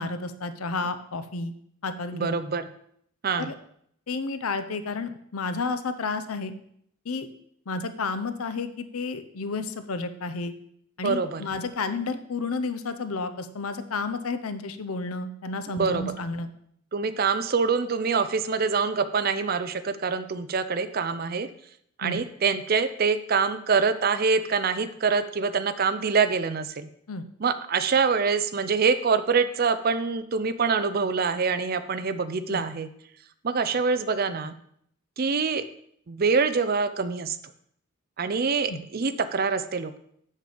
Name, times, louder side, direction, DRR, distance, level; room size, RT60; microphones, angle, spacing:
voice 1, 0.0-1.5 1.8-2.3 3.4-3.6 4.1-6.5 7.0-7.3 7.7-10.5 11.0-16.5 22.0-22.2 27.1-27.3 32.5-32.6 38.7-38.8, left 3 dB, 90° left, 11 dB, 0.7 m, -31 dB
voice 2, 2.1-2.6 3.2-3.5 11.0-11.4 15.7-16.2 16.9-21.5 22.0-26.9 27.4-32.9 33.4-34.5 35.2-35.6 36.1-37.4 38.2-40.0, right 5 dB, 45° right, 11 dB, 0.5 m, -25 dB
6.9 x 6.5 x 5.1 m, 0.68 s
head